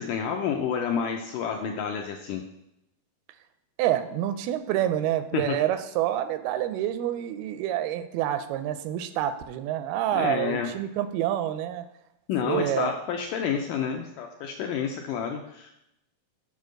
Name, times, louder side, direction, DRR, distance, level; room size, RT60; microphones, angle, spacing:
voice 1, 0.0-2.4 5.3-5.6 10.1-10.7 12.3-15.7, left 7 dB, 85° left, 2 dB, 1.9 m, -29 dB
voice 2, 3.8-11.9 12.4-12.9, right 12 dB, 85° right, 10 dB, 2.5 m, -27 dB
7.4 x 5.3 x 6.4 m, 0.82 s
omnidirectional pair, 4.4 m